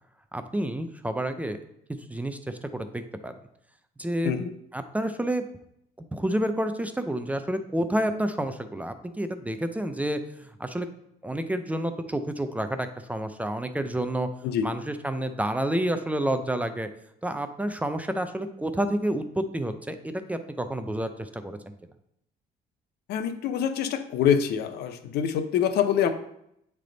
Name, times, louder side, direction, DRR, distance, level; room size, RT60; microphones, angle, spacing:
voice 1, 0.3-1.6 2.1-3.3 4.0-4.3 4.7-5.4 6.0-10.9 11.2-14.3 14.6-16.9 17.2-21.7, right 1 dB, 10° right, 8 dB, 0.5 m, -29 dB
voice 2, 23.1-26.1, left 8 dB, 75° left, 9 dB, 0.6 m, -25 dB
8.4 x 3.4 x 3.9 m, 0.75 s
cardioid pair, 110°, 17 cm